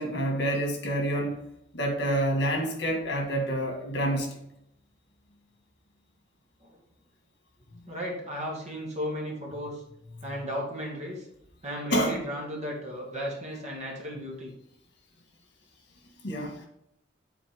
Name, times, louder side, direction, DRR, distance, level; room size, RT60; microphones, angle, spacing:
voice 1, 0.0-1.4 1.7-4.3 11.9-12.2 16.2-16.7, right 1 dB, 55° left, 2 dB, 1.7 m, -28 dB
voice 2, 7.9-9.8 10.2-11.3 11.6-14.5, equal, 35° right, -2 dB, 1.9 m, -34 dB
10.0 x 4.3 x 3.5 m, 0.78 s
head